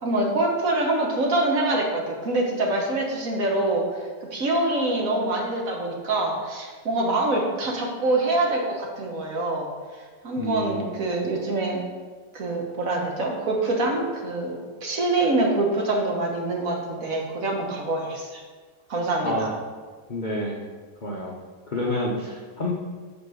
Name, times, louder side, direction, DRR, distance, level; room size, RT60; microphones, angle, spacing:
voice 1, 0.0-3.8 4.3-9.7 10.2-11.8 12.3-18.4 18.9-19.5, right 2 dB, 50° right, 0 dB, 1.4 m, -25 dB
voice 2, 10.4-10.9 19.2-19.5 20.1-20.6 21.0-21.4 21.7-22.7, left 1 dB, 65° left, -3 dB, 0.4 m, -29 dB
5.3 x 5.2 x 6.2 m, 1.5 s
omnidirectional pair, 2.1 m